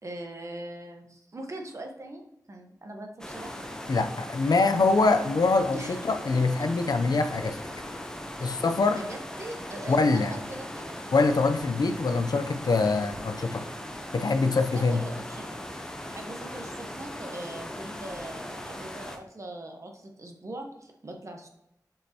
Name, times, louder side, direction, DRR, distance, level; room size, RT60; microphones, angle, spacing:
voice 1, 0.0-2.2 2.5-3.6 5.7-6.0 6.8-6.9 9.0-11.0 12.8-12.9 14.7-15.6 16.1-21.5, right 1 dB, 45° right, 3 dB, 1.2 m, -41 dB
sound 1, 3.2-19.2, left 1 dB, 10° left, 0.9 m, -39 dB
voice 2, 3.9-7.6 8.4-9.0 9.9-10.3 11.1-13.6 14.1-15.0, left 3 dB, 65° left, 8 dB, 0.6 m, -24 dB
7.4 x 5.3 x 2.9 m, 0.82 s
wide cardioid pair, 95°, 7 cm